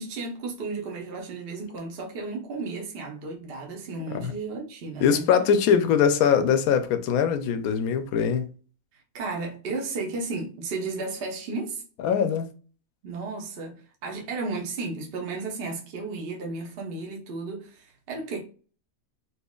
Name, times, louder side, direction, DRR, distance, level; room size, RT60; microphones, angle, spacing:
voice 1, 0.0-5.3 9.1-11.8 13.0-18.4, right 3 dB, 50° right, 0.8 m, -34 dB
voice 2, 5.0-8.5 12.0-12.5, left 7 dB, 80° left, 1.0 m, -22 dB
4.3 x 2.8 x 2.3 m
omnidirectional pair, 1.5 m